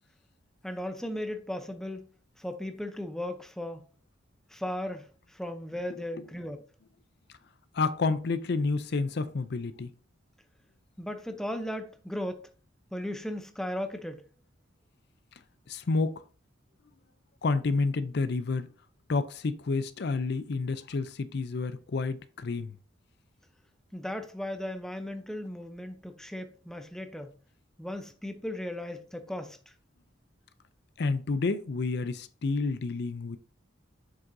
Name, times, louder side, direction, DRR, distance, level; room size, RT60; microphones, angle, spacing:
voice 1, 0.6-2.1 2.4-3.9 4.5-6.6 11.0-12.5 12.9-14.2 23.9-27.3 27.8-29.7, left 1 dB, 5° left, 0.6 m, -36 dB
voice 2, 5.9-6.3 7.7-9.9 15.7-16.2 17.4-18.7 19.1-22.8 31.0-33.4, left 3 dB, 55° left, 0.5 m, -29 dB
7.5 x 6.2 x 2.6 m
head